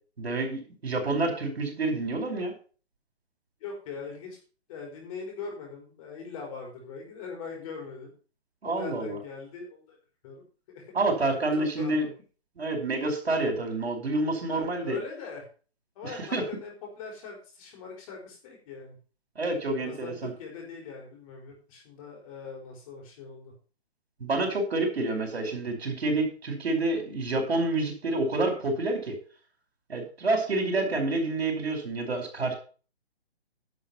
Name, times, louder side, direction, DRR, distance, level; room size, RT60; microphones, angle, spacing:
voice 1, 0.2-2.5 8.6-9.2 10.9-12.1 12.6-15.0 16.0-16.4 19.3-20.3 24.2-29.2 29.9-32.5, right 2 dB, 70° right, 3 dB, 4.7 m, -28 dB
voice 2, 3.6-4.4 4.7-8.1 8.6-10.0 10.2-10.8 11.2-12.1 14.5-15.5 15.9-19.0 19.8-23.5, left 5 dB, 35° left, 1 dB, 4.7 m, -41 dB
11.0 x 6.6 x 5.8 m, 0.38 s
hypercardioid pair, 150°, 32 cm